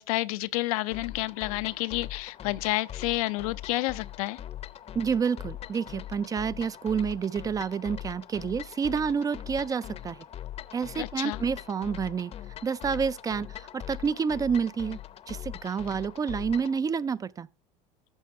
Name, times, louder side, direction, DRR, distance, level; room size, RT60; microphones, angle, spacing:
voice 1, 0.0-4.4 11.0-11.4, left 19 dB, 80° left, 0.5 m, -30 dB
sound 1, 0.9-16.8, left 11 dB, 35° left, 0.7 m, -42 dB
voice 2, 5.0-10.2 10.7-12.3 12.6-15.0 15.3-17.5, right 6 dB, 20° right, 0.3 m, -29 dB
14.0 x 5.1 x 3.5 m
supercardioid pair, 115°, 18 cm